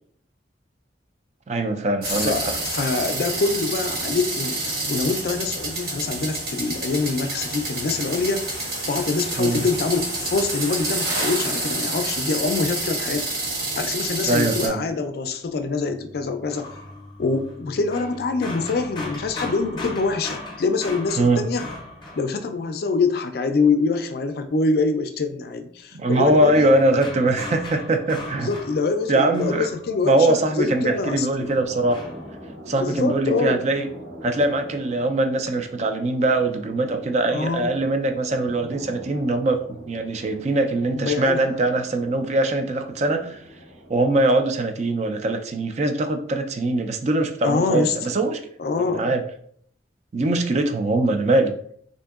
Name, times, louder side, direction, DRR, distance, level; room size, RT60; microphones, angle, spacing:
voice 1, 1.5-2.5 9.4-9.6 14.3-14.8 21.2-21.5 25.9-28.5 29.1-29.7 30.0-32.0 32.7-33.9 34.2-43.4 43.9-48.4 48.9-49.2 50.1-51.5, right 2 dB, 40° right, 6 dB, 0.3 m, -22 dB
sound 1, 2.0-14.7, right 2 dB, 55° right, 1.1 m, -28 dB
voice 2, 2.1-13.3 13.8-16.7 17.2-21.7 22.2-26.7 28.4-31.5 32.8-33.6 37.3-37.7 40.9-41.5 47.4-48.0 48.6-49.1, left 4 dB, 55° left, 8 dB, 0.4 m, -25 dB
sound 2, 15.8-22.9 26.2-30.4 30.7-32.4, left 2 dB, 25° left, 0.7 m, -38 dB
sound 3, 31.6-43.9, equal, 80° right, 1.0 m, -43 dB
3.6 x 2.6 x 2.3 m, 0.63 s
head